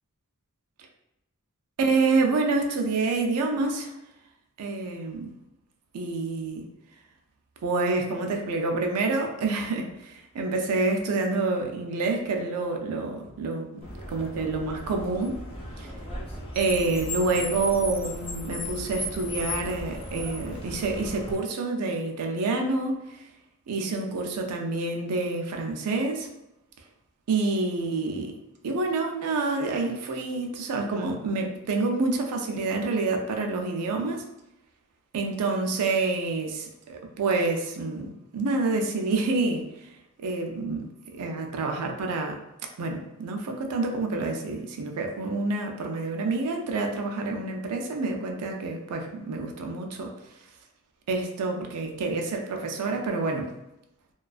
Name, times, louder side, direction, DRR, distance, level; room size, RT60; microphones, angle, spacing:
voice 1, 1.8-3.9 4.6-5.3 5.9-6.6 7.6-13.8 14.1-15.4 15.8-15.9 16.5-23.2 23.7-26.3 27.3-28.3 28.6-34.2 35.1-39.7 40.2-42.4 42.8-50.1 51.1-53.5, right 3 dB, 90° right, 3 dB, 0.4 m, -28 dB
Car, 13.8-21.3, left 1 dB, 25° left, 0.4 m, -36 dB
2.4 x 2.3 x 2.3 m, 0.89 s
head